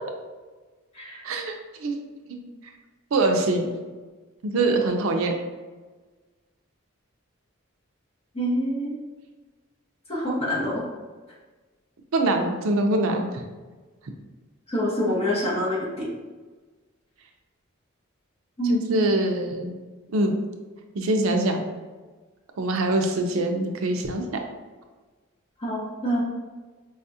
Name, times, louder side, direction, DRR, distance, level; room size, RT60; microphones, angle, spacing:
voice 1, 1.2-1.6 1.8-1.9 2.3-2.4 3.1-3.7 4.4-5.3 12.1-13.3 18.7-19.8 20.1-20.3 20.9-21.7 22.6-24.2, right 2 dB, 85° right, 3 dB, 0.5 m, -23 dB
voice 2, 8.3-8.9 10.1-10.8 14.7-16.1 18.6-19.1 25.6-26.2, equal, 30° left, -7 dB, 1.2 m, -26 dB
4.8 x 2.3 x 2.7 m, 1.3 s
head